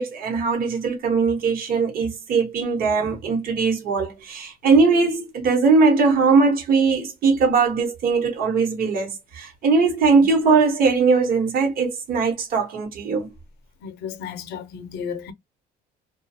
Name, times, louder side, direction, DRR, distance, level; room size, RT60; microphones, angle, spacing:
voice 1, 0.0-13.3, right 4 dB, 60° right, 1.0 m, -20 dB
voice 2, 13.8-15.3, left 7 dB, 75° left, 0.5 m, -33 dB
2.3 x 2.3 x 2.6 m
cardioid pair, 110°, 17 cm